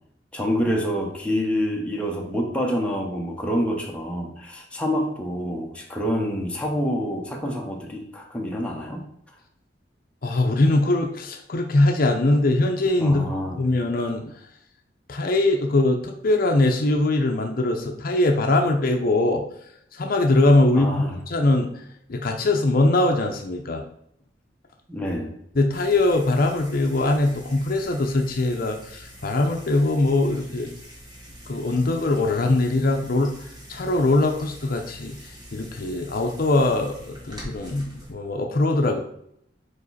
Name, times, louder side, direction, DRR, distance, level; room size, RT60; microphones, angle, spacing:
voice 1, 0.3-9.0 13.0-13.6 20.7-21.2 24.9-25.3, equal, 5° left, -1 dB, 1.1 m, -27 dB
voice 2, 10.2-13.3 13.6-14.2 15.1-19.4 20.0-20.9 21.3-21.7 22.1-23.8 25.5-30.7 31.5-33.3 33.7-35.2 35.5-39.0, left 2 dB, 55° left, 4 dB, 0.7 m, -21 dB
sound 1, 25.7-38.1, equal, 25° right, 1.9 m, -45 dB
5.3 x 4.6 x 4.1 m, 0.73 s
head